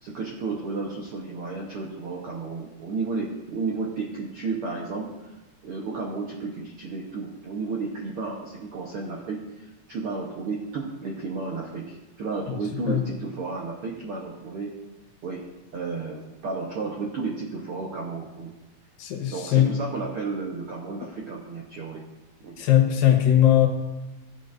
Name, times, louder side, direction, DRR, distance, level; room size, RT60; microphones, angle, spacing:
voice 1, 0.0-5.3 5.6-14.7 15.2-18.5 19.3-22.0 22.4-22.6, right 4 dB, 75° right, -2 dB, 1.3 m, -32 dB
voice 2, 19.0-19.8 22.6-23.7, left 11 dB, 85° left, 3 dB, 2.9 m, -19 dB
16.0 x 8.4 x 2.6 m, 1.0 s
omnidirectional pair, 4.0 m